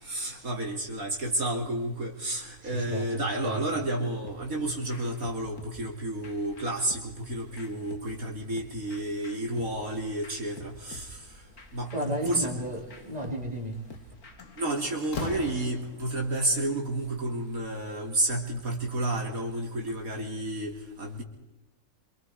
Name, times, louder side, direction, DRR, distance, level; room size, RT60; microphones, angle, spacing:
voice 1, 0.0-11.2 11.7-12.5 14.6-21.2, right 1 dB, 65° right, 3.3 m, -31 dB
voice 2, 2.6-3.8 11.9-13.9, right 1 dB, 25° right, 4.2 m, -34 dB
sound 1, 4.2-14.9, left 1 dB, 75° left, 2.8 m, -50 dB
Slam, 13.7-14.0 14.4-16.3, left 4 dB, 55° left, 2.1 m, -38 dB
27.0 x 25.0 x 4.8 m
omnidirectional pair, 1.6 m